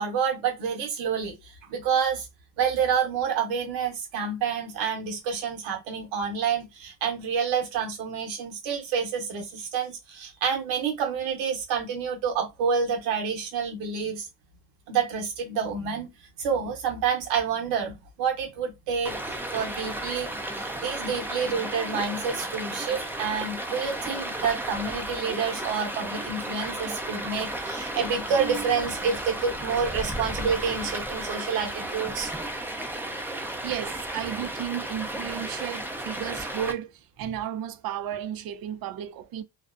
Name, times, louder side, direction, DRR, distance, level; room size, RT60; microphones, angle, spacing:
voice 1, 0.0-2.3 2.6-14.3 14.9-16.1 16.4-32.3, right 6 dB, 80° right, 1.1 m, -28 dB
Stream, 19.0-36.7, right 1 dB, 5° right, 0.5 m, -34 dB
voice 2, 33.6-39.4, right 10 dB, 55° right, 0.5 m, -33 dB
2.4 x 2.0 x 2.4 m
supercardioid pair, 65°, 44 cm